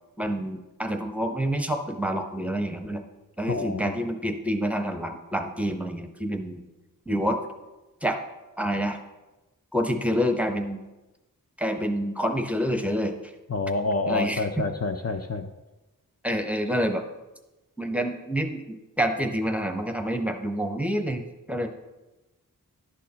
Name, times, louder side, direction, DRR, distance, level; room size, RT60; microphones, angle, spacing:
voice 1, 0.2-3.0 3.4-6.6 7.1-7.4 8.0-8.2 8.6-9.0 9.7-10.8 11.6-13.3 14.1-14.5 16.2-17.0 17.8-21.7, equal, 5° right, 5 dB, 0.8 m, -27 dB
voice 2, 3.5-3.9 13.5-15.5, left 3 dB, 45° left, 6 dB, 0.5 m, -28 dB
11.0 x 6.3 x 2.8 m, 1.1 s
wide cardioid pair, 50°, 36 cm